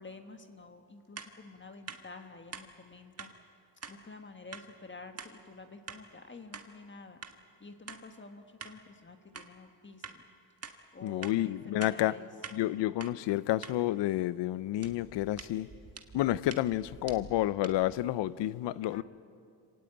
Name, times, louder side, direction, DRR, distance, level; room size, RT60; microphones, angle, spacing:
voice 1, 0.0-3.3 3.9-7.2 7.6-10.2 10.9-12.3 18.9-19.0, left 3 dB, 25° left, 1.5 m, -49 dB
sound 1, 1.2-1.3 1.9-2.0 2.5-2.7 3.2-3.3 3.8-4.0 4.5-4.7 5.2-5.3 5.9-6.0 6.5-6.7 7.2-7.4 7.9-8.0 8.6-8.8 9.3-9.5 10.0-10.2 10.6-10.8 11.2-11.4 11.8-12.0 12.4-12.6 13.0-13.1 13.6-13.8 14.8-18.0, right 5 dB, 35° right, 1.7 m, -46 dB
voice 2, 11.0-12.1 12.5-15.7 16.1-19.0, left 14 dB, 90° left, 0.6 m, -30 dB
26.0 x 18.0 x 8.8 m
cardioid pair, 100°, 42 cm